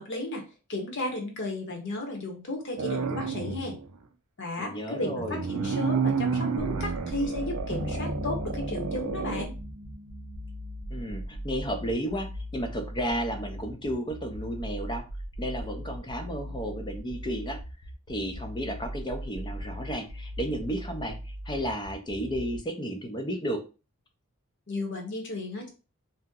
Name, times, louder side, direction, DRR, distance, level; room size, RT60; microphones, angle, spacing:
voice 1, 0.0-3.8 4.4-9.5 24.7-25.7, left 2 dB, 55° left, 2 dB, 0.9 m, -34 dB
sound 1, 2.8-3.9 5.0-9.5, right 5 dB, 75° right, 0.4 m, -31 dB
voice 2, 4.6-5.4 10.9-15.0 15.4-17.6 18.1-23.6, equal, 20° left, 5 dB, 0.5 m, -33 dB
sound 2, 6.6-22.6, equal, 75° left, 0.6 m, -39 dB
sound 3, 7.7-12.1, equal, 15° right, 0.8 m, -39 dB
2.7 x 2.1 x 3.6 m, 0.32 s
head